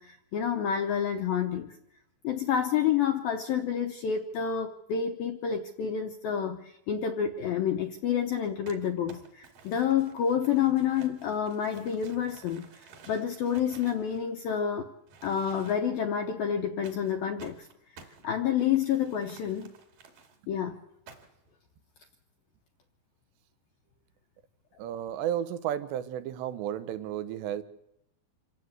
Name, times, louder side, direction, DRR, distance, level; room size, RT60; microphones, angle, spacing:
voice 1, 0.0-1.8 2.2-14.9 15.2-17.7 17.9-19.7 20.5-20.8, left 8 dB, 75° left, 5 dB, 2.1 m, -29 dB
Crumpling crinkling, 8.7-14.7 15.1-16.0 16.8-20.4 21.1-21.5, right 4 dB, 50° right, 3.6 m, -53 dB
voice 2, 24.8-27.6, right 10 dB, 75° right, 12 dB, 3.1 m, -33 dB
27.0 x 16.0 x 8.1 m, 0.83 s
omnidirectional pair, 5.5 m